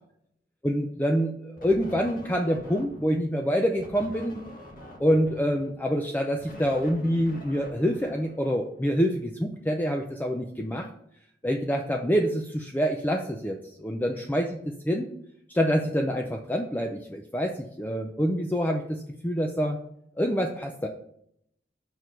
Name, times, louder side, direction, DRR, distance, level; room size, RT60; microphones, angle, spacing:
voice 1, 0.6-4.4 5.0-10.9 11.4-15.1 15.5-19.8 20.2-20.9, equal, 10° left, 2 dB, 0.5 m, -26 dB
sound 1, 1.6-3.2 3.8-8.9, equal, 50° left, 1.4 m, -46 dB
6.0 x 4.7 x 5.2 m, 0.72 s
head